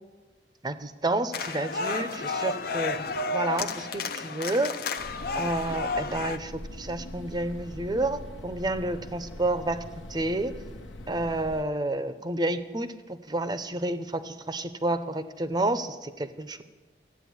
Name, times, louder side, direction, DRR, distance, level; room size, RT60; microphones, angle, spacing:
voice 1, 0.6-3.0 3.3-4.8 5.3-9.8 10.1-10.5 11.1-16.6, right 2 dB, 20° right, 11 dB, 0.7 m, -30 dB
sound 1, 1.3-6.4, left 3 dB, 50° left, 0.6 m, -31 dB
sound 2, 5.0-11.6, left 1 dB, 80° left, 1.1 m, -42 dB
13.5 x 8.8 x 9.5 m, 1.3 s
head